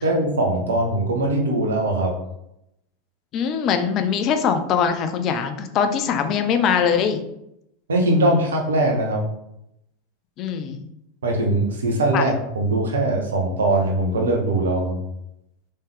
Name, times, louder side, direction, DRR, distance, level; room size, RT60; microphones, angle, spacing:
voice 1, 0.0-2.1 7.9-9.2 11.2-15.0, right 1 dB, 70° right, 1 dB, 1.0 m, -21 dB
voice 2, 3.3-7.2 10.4-10.8 12.1-12.2, left 7 dB, 40° left, 8 dB, 0.5 m, -22 dB
4.2 x 3.6 x 3.4 m, 0.81 s
figure-of-eight pair, 85°, 0 cm